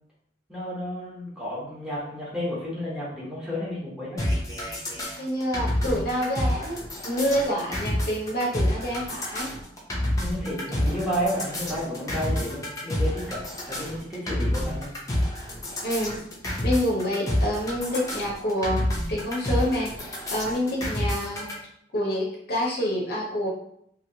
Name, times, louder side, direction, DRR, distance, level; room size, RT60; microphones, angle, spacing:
voice 1, 0.5-4.2 10.1-13.4 13.7-14.9, equal, 5° right, -7 dB, 1.0 m, -31 dB
sound 1, 4.2-21.5, left 1 dB, 20° left, 0.7 m, -28 dB
voice 2, 5.2-9.5 15.8-16.2 16.6-21.5 21.9-23.5, equal, 55° left, -2 dB, 0.7 m, -27 dB
3.0 x 2.7 x 2.7 m, 0.71 s
head